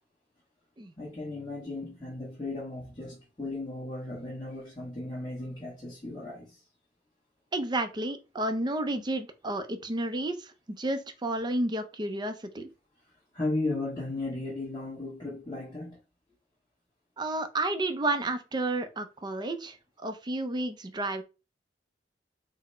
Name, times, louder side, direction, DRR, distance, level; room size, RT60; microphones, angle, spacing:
voice 1, 1.0-6.6 13.3-16.0, left 2 dB, 20° left, 1.2 m, -35 dB
voice 2, 7.5-10.5 10.8-12.7 17.2-21.2, right 2 dB, 25° right, 0.4 m, -31 dB
4.0 x 2.1 x 4.2 m
head